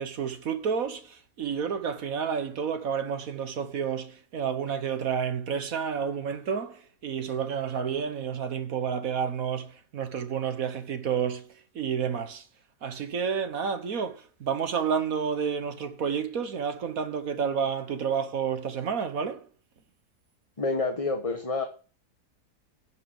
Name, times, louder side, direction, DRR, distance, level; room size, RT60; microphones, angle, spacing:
voice 1, 0.0-12.5 12.8-19.5, right 7 dB, 65° right, 1.6 m, -30 dB
voice 2, 20.6-21.7, left 3 dB, 25° left, 1.2 m, -28 dB
10.5 x 6.4 x 7.5 m
omnidirectional pair, 1.7 m